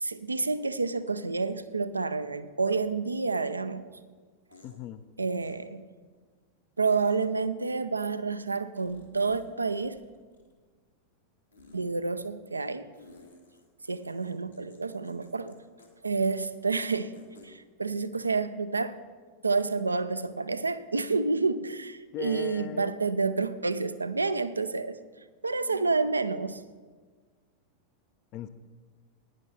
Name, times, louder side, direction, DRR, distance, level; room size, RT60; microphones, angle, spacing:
voice 1, 0.0-3.9 5.2-5.8 6.8-10.0 11.7-12.9 13.9-15.5 16.0-17.1 17.4-19.0 19.4-25.0 25.4-26.6, right 4 dB, 80° right, 13 dB, 0.4 m, -29 dB
sound 1, 4.5-4.8 5.4-5.5 6.9-7.2 8.8-9.5 9.7-10.6 11.5-11.8 12.9-15.5 15.8-15.9 16.2-16.3 16.6-17.5, left 3 dB, 85° left, 1.8 m, -55 dB
voice 2, 4.6-5.0 22.1-23.0 28.3-28.5, left 11 dB, 40° left, 12 dB, 0.4 m, -38 dB
11.0 x 9.8 x 4.7 m, 1.5 s
figure-of-eight pair, 90°, 0 cm